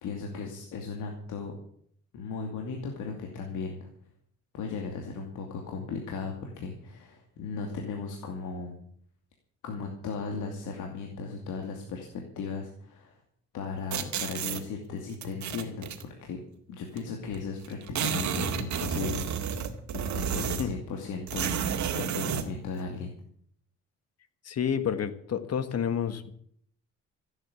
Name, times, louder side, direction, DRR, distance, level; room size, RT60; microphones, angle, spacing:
voice 1, 0.0-1.5 2.1-3.9 4.5-8.7 9.6-13.2 13.5-16.4 16.7-19.2 19.9-23.1, left 4 dB, 80° left, 2 dB, 2.6 m, -36 dB
sound 1, 13.9-14.6 15.2-16.0 17.0-17.1 17.3-17.4 17.6-20.8 21.3-22.5, right 8 dB, 70° right, 2.0 m, -31 dB
voice 2, 24.4-26.3, left 8 dB, 55° left, 12 dB, 1.6 m, -29 dB
15.0 x 8.9 x 8.5 m, 0.64 s
cardioid pair, 90°, 30 cm